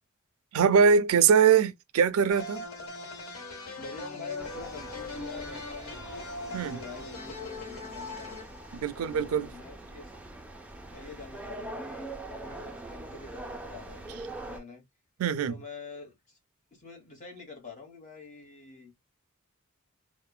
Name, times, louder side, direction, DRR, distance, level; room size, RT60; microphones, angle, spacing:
voice 1, 0.5-2.6 6.5-6.8 8.7-9.5 15.2-15.5, right 6 dB, 80° right, 0.4 m, -22 dB
sound 1, 2.3-9.3, left 3 dB, 85° left, 1.0 m, -40 dB
voice 2, 3.8-6.1 6.4-8.4 8.9-10.1 10.9-14.9 15.5-16.4 16.7-18.9, left 4 dB, 35° left, 1.2 m, -46 dB
sound 2, 4.4-14.6, right 2 dB, 5° right, 0.4 m, -43 dB
3.1 x 2.1 x 2.2 m
head